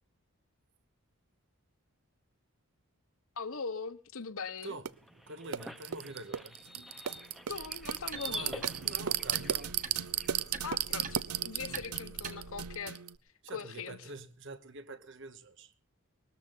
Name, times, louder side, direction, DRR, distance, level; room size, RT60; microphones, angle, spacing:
voice 1, 3.4-4.8 7.5-8.6 10.6-13.0 13.5-14.0, left 5 dB, 65° left, 1.1 m, -40 dB
sound 1, 4.8-4.9 5.5-13.1, right 10 dB, 90° right, 0.7 m, -35 dB
sound 2, 4.9-10.4, left 1 dB, ahead, 0.8 m, -47 dB
voice 2, 5.3-6.6 8.2-9.7 11.7-11.8 13.4-15.7, right 2 dB, 55° right, 1.2 m, -46 dB
sound 3, 7.5-12.7, right 4 dB, 35° right, 1.4 m, -47 dB
20.0 x 13.5 x 3.9 m
head